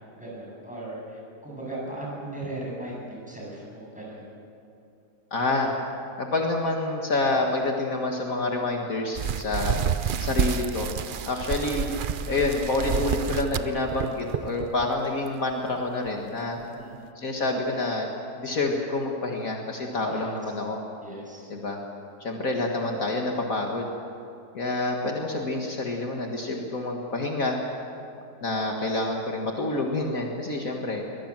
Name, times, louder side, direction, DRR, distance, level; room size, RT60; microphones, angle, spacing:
voice 1, 0.1-4.3 16.7-17.1 20.1-20.4 21.0-21.5, right 1 dB, 5° right, -4 dB, 7.9 m, -38 dB
voice 2, 5.3-5.7 6.2-9.8 10.2-10.9 11.3-11.9 12.3-16.6 17.2-18.1 18.4-20.8 21.5-21.8 22.2-23.9 24.5-27.6 28.4-31.0, left 2 dB, 60° left, 1 dB, 2.2 m, -27 dB
sound 1, 9.2-14.9 15.3-15.5 16.1-16.2 16.6-16.7, right 7 dB, 65° right, 0.5 m, -29 dB
22.5 x 21.5 x 7.5 m, 2.7 s
omnidirectional pair, 1.7 m